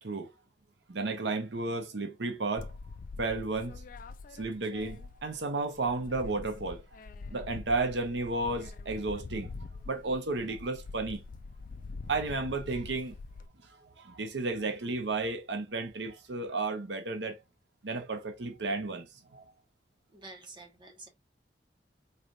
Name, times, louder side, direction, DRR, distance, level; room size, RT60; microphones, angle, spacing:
voice 1, 0.0-0.3 0.9-2.7 3.2-3.8 4.4-6.8 7.3-11.2 12.1-13.2 13.6-17.4 17.8-19.4, right 3 dB, 90° right, 0.8 m, -33 dB
sound 1, 2.6-5.4 5.7-13.5, left 3 dB, 50° left, 0.4 m, -44 dB
voice 2, 20.1-21.1, right 2 dB, 30° right, 1.3 m, -48 dB
4.0 x 3.3 x 2.5 m
head